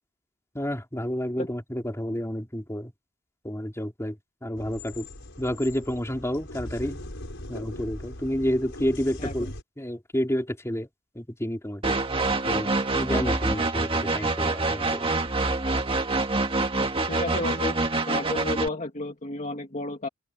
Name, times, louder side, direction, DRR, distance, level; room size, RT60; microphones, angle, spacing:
voice 1, 0.5-2.9 3.4-4.2 4.4-5.1 5.4-7.0 7.5-9.5 9.8-10.9 11.1-12.0 12.5-15.1, equal, 15° left, 4.3 m, -30 dB
sound 1, 4.6-9.6, left 1 dB, 60° left, 6.4 m, -40 dB
voice 2, 9.2-9.5 17.1-17.8 18.1-20.1, left 2 dB, 35° left, 2.1 m, -32 dB
sound 2, 11.8-18.7, right 3 dB, 25° right, 1.8 m, -26 dB
open air
head